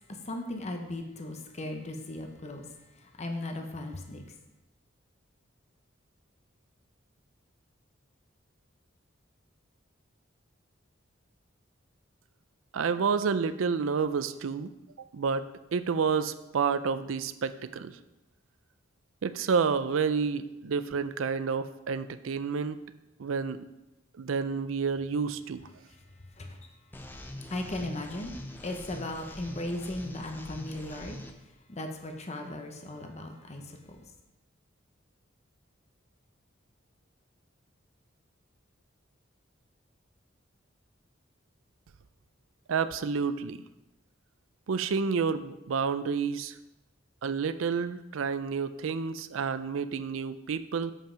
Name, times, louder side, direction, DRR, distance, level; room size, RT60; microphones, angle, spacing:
voice 1, 0.0-4.2 25.8-28.3 28.6-34.0, left 1 dB, 35° left, 4 dB, 0.8 m, -38 dB
voice 2, 12.7-14.7 15.1-18.0 19.2-22.8 23.2-23.7 24.2-25.7 42.7-43.6 44.7-46.6 47.2-50.9, right 5 dB, 90° right, 13 dB, 0.5 m, -29 dB
sound 1, 26.9-31.3, left 1 dB, 10° left, 0.5 m, -44 dB
7.4 x 5.4 x 5.0 m, 0.97 s
head